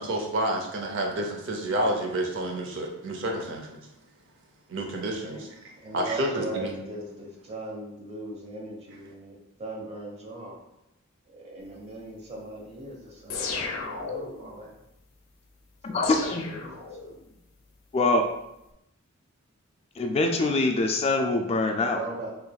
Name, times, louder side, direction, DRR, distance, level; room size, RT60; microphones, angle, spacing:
voice 1, 0.0-3.7 4.7-5.5 5.9-6.7, right 1 dB, 65° right, 2 dB, 0.6 m, -29 dB
voice 2, 5.8-10.6 11.3-14.7 15.9-17.1 21.9-22.3, right 1 dB, 30° right, -2 dB, 0.9 m, -39 dB
sound 1, 13.3-14.5 16.0-17.3, left 4 dB, 70° left, 0.6 m, -34 dB
voice 3, 15.8-16.4 17.9-18.2 20.0-22.0, left 2 dB, 30° left, 4 dB, 0.3 m, -24 dB
4.6 x 3.1 x 2.3 m, 0.85 s
head